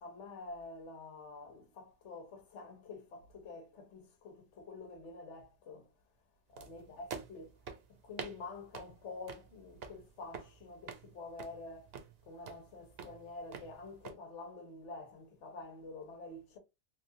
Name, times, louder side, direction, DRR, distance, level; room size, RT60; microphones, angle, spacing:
voice 1, 0.0-5.9 6.5-7.5 7.9-11.9 12.2-16.6, left 3 dB, 85° left, 1.1 m, -48 dB
sound 1, 6.6-14.1, right 6 dB, 65° right, 0.8 m, -49 dB
3.1 x 2.4 x 2.6 m
omnidirectional pair, 1.2 m